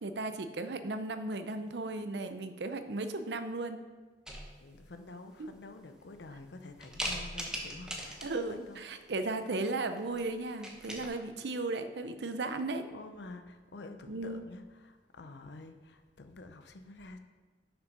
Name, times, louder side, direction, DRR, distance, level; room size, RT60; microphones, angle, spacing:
voice 1, 0.0-3.8 5.4-5.5 8.2-12.8 14.1-14.4, right 2 dB, 70° right, 9 dB, 0.6 m, -36 dB
sound 1, 4.3-4.8 5.5-5.6 6.0-6.4 6.8-8.5 10.0-10.2 10.5-11.1, equal, 5° right, 0.9 m, -40 dB
voice 2, 4.6-8.8 12.8-17.2, left 2 dB, 70° left, 8 dB, 0.6 m, -49 dB
6.3 x 6.0 x 5.3 m, 1.4 s
head